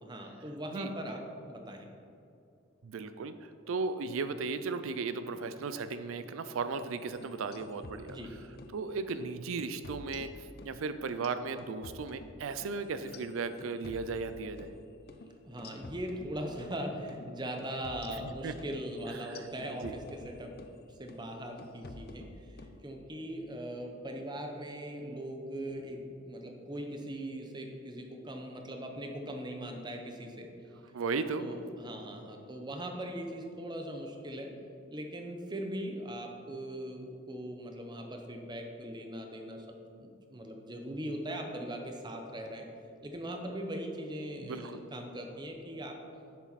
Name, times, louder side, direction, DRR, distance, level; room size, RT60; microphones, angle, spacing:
voice 1, 0.0-1.9 8.1-8.3 15.4-20.6 21.0-30.5 31.4-34.5 34.9-42.7 43.0-46.0, right 1 dB, 20° right, 3 dB, 0.9 m, -40 dB
voice 2, 2.8-8.2 8.7-14.7 18.4-18.8 19.1-19.9 30.9-31.6 44.4-44.8, right 4 dB, 90° right, 11 dB, 0.4 m, -36 dB
sound 1, 7.0-8.8 9.1-9.3 9.6-10.8 11.1-14.8 15.1-15.3 15.6-16.8 17.1-17.3 17.6-20.8 21.1-21.3 21.6-22.8, left 2 dB, 50° left, 0.6 m, -49 dB
10.5 x 7.2 x 4.1 m, 2.6 s
head